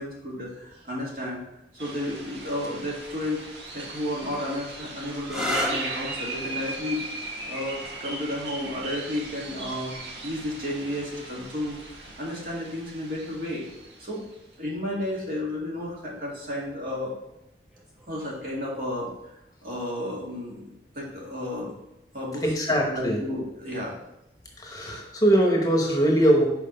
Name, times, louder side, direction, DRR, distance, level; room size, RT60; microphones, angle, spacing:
voice 1, 0.0-1.4 1.7-3.5 3.7-11.8 12.2-13.6 14.0-14.2 14.6-17.1 18.1-19.1 19.6-20.7 20.9-21.7 22.1-22.5 22.8-24.0, left 1 dB, 50° right, -4 dB, 2.2 m, -32 dB
sound 1, 1.8-14.3, right 2 dB, 80° right, 1.4 m, -38 dB
sound 2, 5.2-12.7 13.7-14.2 17.7-18.1, equal, 5° right, 0.9 m, -37 dB
voice 2, 22.4-23.2 24.6-26.4, right 1 dB, 20° left, 0 dB, 1.0 m, -21 dB
5.8 x 4.6 x 5.5 m, 0.86 s
head